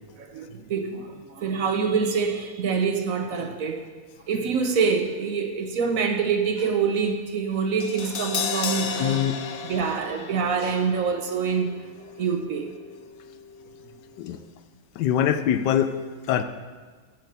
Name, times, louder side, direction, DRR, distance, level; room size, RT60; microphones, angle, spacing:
voice 1, 0.2-3.9 4.3-9.2 9.7-11.7 12.2-12.7, right 5 dB, 60° right, 6 dB, 1.1 m, -25 dB
Crash cymbal, 7.8-14.0 14.2-14.4, left 6 dB, 65° left, 0.5 m, -34 dB
voice 2, 9.0-9.4 14.2-14.4 15.0-15.9 16.3-16.4, left 10 dB, 90° left, 11 dB, 1.3 m, -23 dB
8.2 x 6.1 x 7.3 m, 1.4 s
omnidirectional pair, 1.8 m